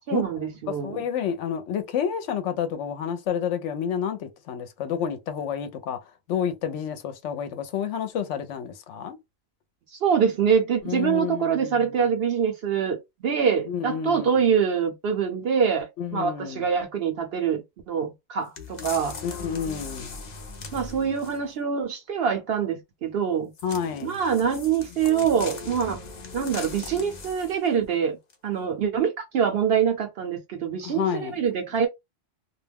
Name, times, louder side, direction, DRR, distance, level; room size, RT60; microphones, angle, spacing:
voice 1, 0.1-1.0 9.9-19.2 20.7-23.5 24.0-26.0 26.3-28.2 28.4-31.9, right 7 dB, 60° right, 0.7 m, -25 dB
voice 2, 0.8-6.0 6.3-9.2 10.8-11.9 13.7-14.4 16.0-16.6 19.2-20.1 23.6-24.2 30.8-31.4, left 8 dB, 70° left, 0.9 m, -29 dB
sound 1, 18.6-21.5 23.5-27.7 28.3-28.4, left 4 dB, 50° left, 0.5 m, -39 dB
2.4 x 2.2 x 3.3 m
omnidirectional pair, 1.3 m